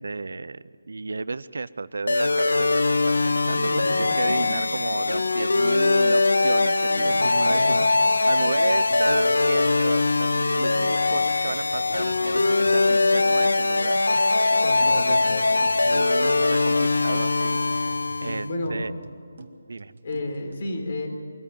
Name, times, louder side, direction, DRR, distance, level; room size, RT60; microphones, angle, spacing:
voice 1, 0.0-3.7 4.0-7.9 8.2-10.3 10.6-15.2 15.9-17.6 18.2-18.9 19.7-19.9, right 3 dB, 70° right, 17 dB, 0.7 m, -32 dB
sound 1, 2.1-18.5, left 3 dB, 85° left, 0.8 m, -21 dB
voice 2, 3.5-4.6 6.9-7.8 14.6-15.5 18.2-18.9 20.0-21.1, left 1 dB, 45° left, 4 dB, 4.1 m, -32 dB
sound 2, 8.5-20.5, right 3 dB, 50° right, 1.5 m, -46 dB
23.5 x 14.0 x 9.2 m, 2.4 s
figure-of-eight pair, 170°, 0 cm